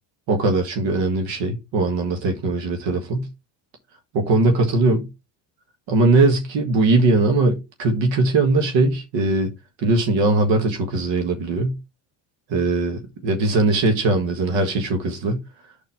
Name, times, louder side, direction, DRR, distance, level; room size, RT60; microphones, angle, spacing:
voice 1, 0.3-3.3 4.1-5.1 5.9-9.5 9.8-11.8 12.5-15.4, right 2 dB, 80° right, 1.6 m, -20 dB
5.3 x 4.4 x 5.8 m
cardioid pair, 95°, 44 cm